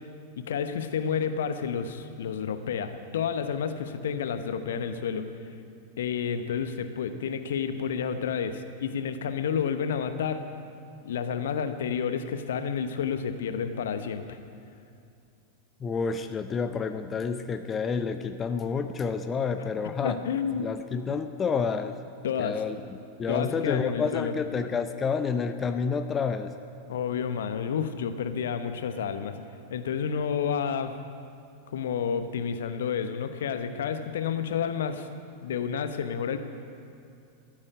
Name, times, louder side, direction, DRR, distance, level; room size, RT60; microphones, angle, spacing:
voice 1, 0.4-5.4 6.0-10.4 11.0-14.4 20.0-20.7 22.2-22.6 23.3-24.3 26.9-29.4 29.7-30.9 31.7-35.1 35.4-36.4, left 7 dB, 60° left, 9 dB, 1.0 m, -30 dB
voice 2, 15.8-20.2 20.6-22.0 22.4-26.5, left 5 dB, 20° left, 9 dB, 0.7 m, -29 dB
15.5 x 8.7 x 9.4 m, 2.5 s
figure-of-eight pair, 90°, 0 cm